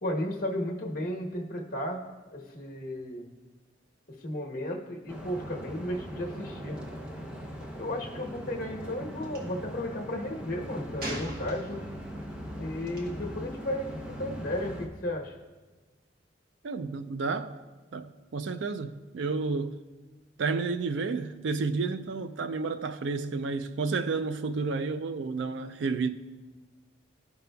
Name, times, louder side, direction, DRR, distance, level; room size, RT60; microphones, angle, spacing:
voice 1, 0.0-2.0 2.3-3.3 4.1-6.8 7.7-11.8 12.6-15.3, left 1 dB, 50° left, 1.1 m, -34 dB
sound 1, 5.1-14.9, equal, 5° right, 0.7 m, -40 dB
Gunshot gunfire, 9.2-9.4 11.0-12.0 12.9-13.1, right 1 dB, 55° right, 1.2 m, -38 dB
voice 2, 16.6-17.6 17.9-19.8 20.4-26.1, right 4 dB, 80° right, 0.4 m, -31 dB
14.0 x 5.2 x 2.3 m
head